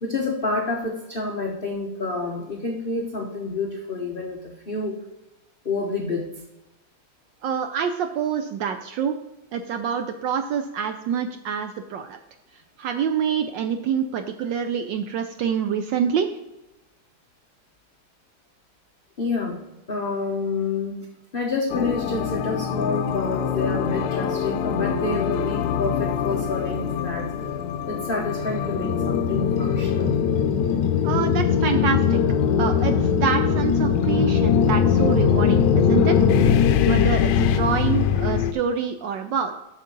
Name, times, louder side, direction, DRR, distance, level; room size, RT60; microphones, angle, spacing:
voice 1, 0.0-5.0 5.6-6.3 19.2-21.1 21.3-27.3 27.9-30.2, left 3 dB, 40° left, 0 dB, 0.7 m, -28 dB
voice 2, 7.4-9.2 9.5-12.2 12.5-16.3 31.0-32.2 32.6-36.2 36.4-39.6, right 7 dB, 75° right, 7 dB, 1.1 m, -26 dB
sound 1, 21.7-38.5, left 7 dB, 80° left, 1.4 m, -22 dB
7.4 x 6.7 x 3.9 m, 0.98 s
omnidirectional pair, 2.3 m